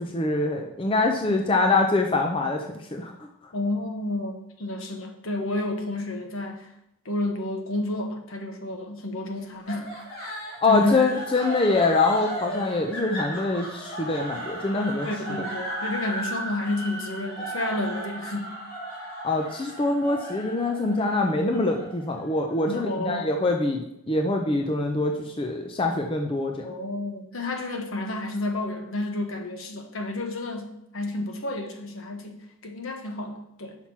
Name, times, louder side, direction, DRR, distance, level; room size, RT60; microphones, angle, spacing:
voice 1, 0.0-2.7 2.9-3.1 10.6-15.1 19.2-26.7, left 2 dB, 25° left, 2 dB, 0.5 m, -24 dB
voice 2, 3.5-6.7 7.0-10.0 10.7-11.0 15.0-18.5 22.6-23.3 26.6-33.8, left 2 dB, 65° left, 4 dB, 1.1 m, -31 dB
sound 1, 9.7-22.8, right 1 dB, 85° left, 2.7 m, -36 dB
5.8 x 5.8 x 4.5 m, 0.79 s
head